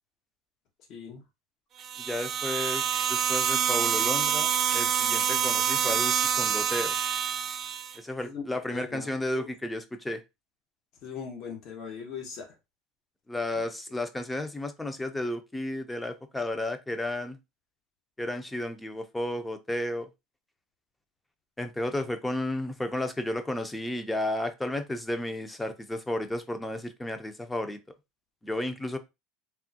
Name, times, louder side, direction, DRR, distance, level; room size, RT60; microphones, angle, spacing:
voice 1, 0.9-1.2 8.2-8.4 8.7-9.5 11.0-12.6, left 6 dB, 55° left, 0.9 m, -40 dB
sound 1, 1.8-8.0, right 8 dB, 40° right, 0.5 m, -27 dB
voice 2, 2.0-7.0 8.0-10.2 13.3-17.4 18.2-20.1 21.6-27.8 28.4-29.0, left 1 dB, 10° left, 0.5 m, -33 dB
3.5 x 2.1 x 2.7 m
supercardioid pair, 110°, 0 cm